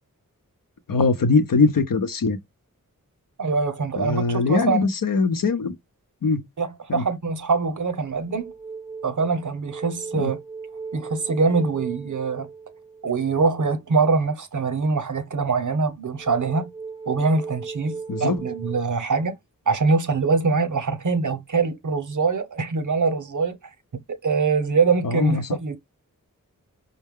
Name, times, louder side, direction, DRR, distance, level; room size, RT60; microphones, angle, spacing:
voice 1, 0.9-2.4 4.0-5.8 6.2-6.4 6.9-7.1 10.1-10.3 18.1-18.4 25.0-25.6, left 4 dB, 75° left, 0.7 m, -21 dB
voice 2, 3.4-4.9 6.6-8.5 9.0-10.4 10.9-12.5 13.0-16.6 17.1-19.3 19.7-23.6 24.2-25.8, right 4 dB, 65° right, 0.8 m, -23 dB
sound 1, 7.2-7.3 7.8-13.7 16.2-18.8, right 5 dB, 15° right, 0.3 m, -38 dB
5.4 x 2.1 x 3.5 m
wide cardioid pair, 80°, 33 cm